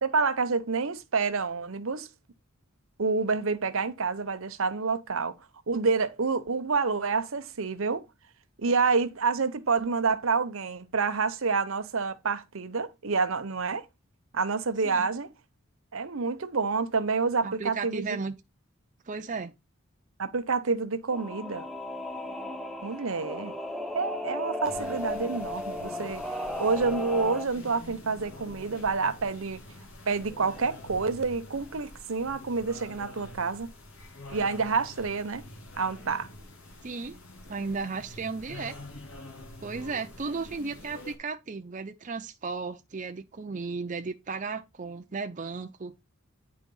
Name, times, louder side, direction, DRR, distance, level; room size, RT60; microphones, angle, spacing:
voice 1, 0.0-2.1 3.0-5.3 5.7-8.0 8.6-13.8 14.3-15.3 15.9-18.2 20.2-21.7 22.8-23.5 23.9-26.2 26.6-29.6 30.1-33.7 34.3-35.4 35.8-36.3, right 4 dB, 70° right, 0.8 m, -28 dB
voice 2, 17.4-18.4 19.1-19.5 36.8-37.2 37.5-38.7 39.6-45.9, right 4 dB, 35° right, 0.5 m, -35 dB
Singing / Musical instrument, 21.1-27.5, left 1 dB, ahead, 0.7 m, -35 dB
sound 1, 24.6-41.2, left 1 dB, 70° left, 2.1 m, -46 dB
9.6 x 3.6 x 5.4 m
head